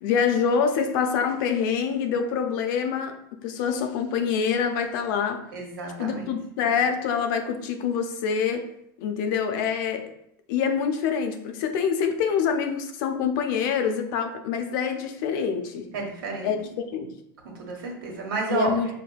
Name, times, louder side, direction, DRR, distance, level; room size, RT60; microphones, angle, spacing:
voice 1, 0.0-3.1 3.4-5.4 6.0-8.7 9.0-10.1 10.5-15.9 16.4-16.6 16.9-17.1 18.5-18.9, left 6 dB, 70° left, 6 dB, 0.5 m, -25 dB
voice 2, 5.5-6.3 15.9-16.7 17.5-18.7, right 3 dB, 85° right, 0 dB, 1.1 m, -31 dB
5.8 x 2.2 x 2.3 m, 0.74 s
supercardioid pair, 115°, 11 cm